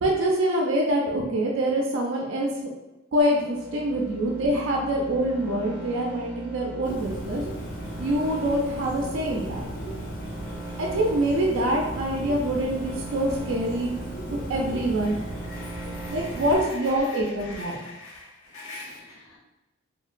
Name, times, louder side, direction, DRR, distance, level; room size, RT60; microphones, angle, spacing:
voice 1, 0.0-2.5 3.1-7.4 8.0-9.7 10.8-13.9 14.3-15.2 16.1-17.8, right 1 dB, 65° right, -1 dB, 0.4 m, -25 dB
sound 1, 3.2-16.6, right 3 dB, 10° right, 0.5 m, -39 dB
Bird, 6.8-16.6, equal, 40° left, 0.4 m, -37 dB
voice 2, 15.0-19.4, left 3 dB, 80° left, -3 dB, 0.7 m, -43 dB
2.8 x 2.1 x 2.4 m, 1.0 s
head